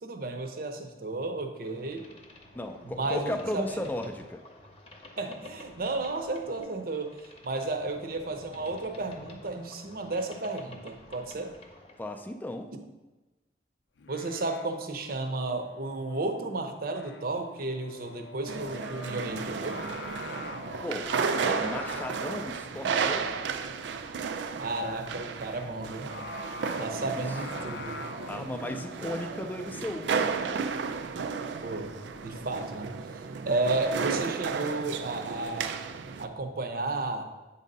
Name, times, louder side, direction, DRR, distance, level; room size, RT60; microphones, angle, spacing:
voice 1, 0.0-2.0 2.8-3.8 5.2-11.5 14.1-19.8 24.6-26.1 26.8-28.0 31.6-31.9 32.2-35.8 36.2-37.3, right 2 dB, 55° right, 5 dB, 0.7 m, -33 dB
Boat Water vehicle, 1.6-12.1, left 2 dB, 35° left, 0.8 m, -51 dB
voice 2, 2.5-4.4 12.0-12.7 20.8-23.6 26.7-27.4 28.3-30.6, left 1 dB, 10° left, 5 dB, 0.4 m, -36 dB
Singing, 14.0-32.5, left 4 dB, 85° left, 0.5 m, -46 dB
sound 1, 18.5-36.3, right 5 dB, 85° right, 0.4 m, -33 dB
8.2 x 2.7 x 5.2 m, 1.1 s
head